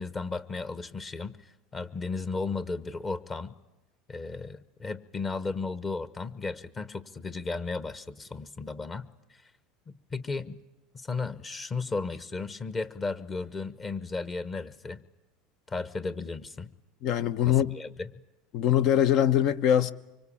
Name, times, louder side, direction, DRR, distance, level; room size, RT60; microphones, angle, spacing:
voice 1, 0.0-3.5 4.1-9.4 9.9-10.6 10.9-15.0 15.7-16.7 17.4-18.1, left 3 dB, 25° left, 1.3 m, -35 dB
voice 2, 17.0-17.7 18.5-19.9, left 10 dB, 60° left, 1.0 m, -23 dB
25.0 x 24.5 x 8.7 m
hypercardioid pair, 90°, 0 cm